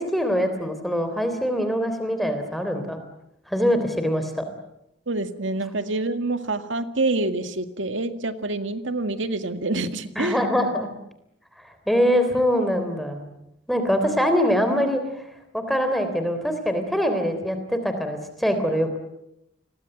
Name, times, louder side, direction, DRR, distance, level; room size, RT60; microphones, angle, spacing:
voice 1, 0.0-3.0 3.5-4.4 10.1-10.9 11.9-13.2 13.7-15.0 15.5-19.0, equal, ahead, 7 dB, 3.4 m, -23 dB
voice 2, 5.1-10.4, right 2 dB, 80° right, 9 dB, 2.0 m, -27 dB
29.5 x 22.5 x 7.9 m, 0.81 s
head